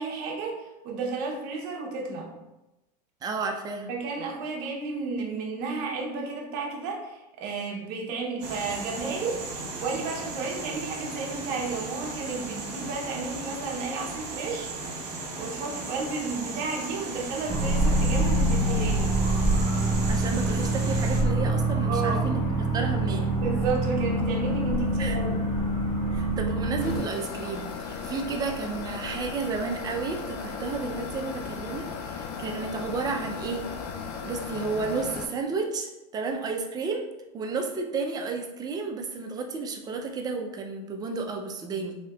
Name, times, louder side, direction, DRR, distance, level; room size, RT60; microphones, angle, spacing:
voice 1, 0.0-2.4 3.9-14.7 15.4-19.2 21.9-22.4 23.4-25.5, right 4 dB, 50° right, 0 dB, 0.8 m, -32 dB
voice 2, 3.2-3.9 20.0-22.4 22.7-23.3 25.0-25.2 26.1-33.6 34.2-37.0 37.3-42.0, right 4 dB, 20° right, 3 dB, 0.3 m, -32 dB
sound 1, 8.4-21.2, right 3 dB, 70° right, 1.0 m, -36 dB
sound 2, 17.5-27.0, right 1 dB, 20° left, 1.2 m, -25 dB
sound 3, 26.8-35.3, left 5 dB, 75° left, 0.5 m, -36 dB
3.4 x 2.7 x 2.3 m, 0.99 s
supercardioid pair, 120°, 21 cm